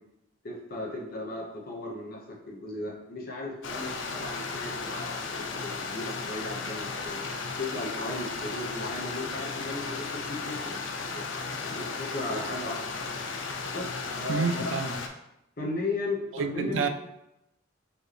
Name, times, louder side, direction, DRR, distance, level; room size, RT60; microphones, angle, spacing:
voice 1, 0.4-2.2 2.5-7.2 7.6-11.3 11.6-12.8 13.7-14.7 15.6-16.9, left 2 dB, 45° left, -1 dB, 0.9 m, -36 dB
Stream, 3.6-15.1, left 4 dB, 70° left, 0.5 m, -35 dB
voice 2, 14.3-15.0 16.3-16.9, right 5 dB, 70° right, 7 dB, 0.4 m, -28 dB
4.5 x 2.9 x 3.3 m, 0.84 s
head